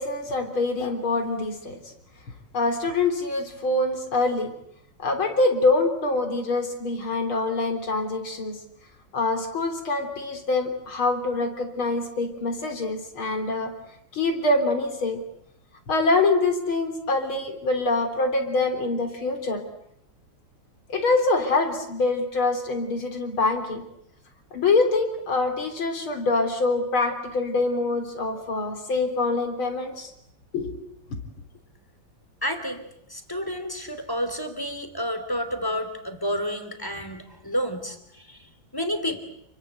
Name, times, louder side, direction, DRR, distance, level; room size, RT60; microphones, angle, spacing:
voice 1, 0.0-1.8 2.5-4.5 5.0-8.6 9.1-13.7 14.1-15.2 15.9-19.6 20.9-23.8 24.5-30.1 30.5-30.7, left 3 dB, 80° left, 5 dB, 4.5 m, -25 dB
voice 2, 32.4-39.2, equal, 10° left, 8 dB, 3.1 m, -30 dB
29.0 x 23.0 x 8.2 m, 0.74 s
omnidirectional pair, 2.2 m